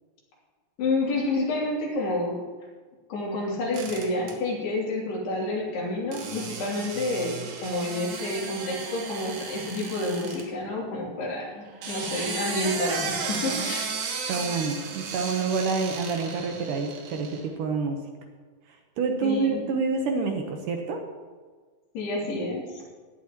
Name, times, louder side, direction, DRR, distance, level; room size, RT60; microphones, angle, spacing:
voice 1, 0.8-2.4 3.1-13.9 19.2-19.6 21.9-22.8, left 2 dB, 85° left, -4 dB, 5.1 m, -29 dB
sound 1, 3.7-4.3 6.1-10.4 11.6-17.5, right 5 dB, 85° right, 3.6 m, -34 dB
voice 2, 14.3-18.0 19.0-21.0, right 4 dB, 70° right, 3 dB, 2.3 m, -27 dB
17.0 x 11.0 x 3.0 m, 1.5 s
omnidirectional pair, 4.5 m